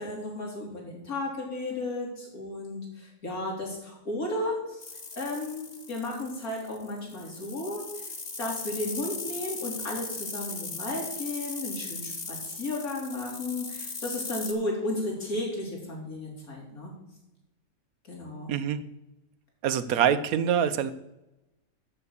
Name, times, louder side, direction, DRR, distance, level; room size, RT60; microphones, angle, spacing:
voice 1, 0.0-5.6 5.9-16.9 18.1-18.5, left 2 dB, 90° left, -2 dB, 3.4 m, -34 dB
sound 1, 4.8-14.5, left 4 dB, 30° left, 1.0 m, -38 dB
voice 2, 18.5-18.8 19.6-20.9, right 8 dB, 80° right, 13 dB, 1.2 m, -25 dB
7.6 x 7.1 x 8.0 m, 0.96 s
omnidirectional pair, 1.5 m